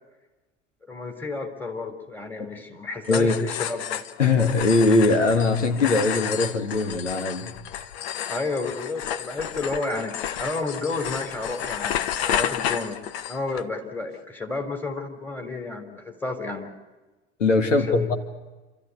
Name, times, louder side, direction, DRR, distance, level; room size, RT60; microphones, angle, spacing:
voice 1, 0.9-4.0 8.3-16.7 17.6-18.1, left 3 dB, 5° left, 3 dB, 3.7 m, -31 dB
sound 1, 3.0-13.6, left 10 dB, 55° left, 1.2 m, -31 dB
voice 2, 4.2-7.6 17.4-18.1, left 3 dB, 75° left, 6 dB, 2.0 m, -21 dB
28.0 x 14.0 x 9.7 m, 1.2 s
figure-of-eight pair, 80°, 37 cm